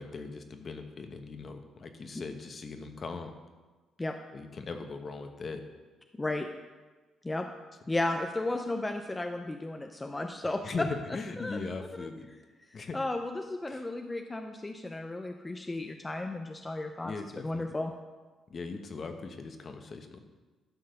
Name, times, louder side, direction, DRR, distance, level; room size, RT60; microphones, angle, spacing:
voice 1, 0.0-3.3 4.3-5.6 10.6-12.3 12.7-13.0 13.7-13.9 17.0-17.7 18.5-20.2, left 4 dB, 45° left, 6 dB, 1.1 m, -39 dB
voice 2, 6.1-6.5 7.2-7.5 7.9-10.9 11.4-11.6 12.0-12.1 12.9-17.1 17.4-17.9, left 2 dB, 20° left, 5 dB, 0.6 m, -34 dB
12.0 x 4.7 x 6.7 m, 1.3 s
cardioid pair, 90°, 0 cm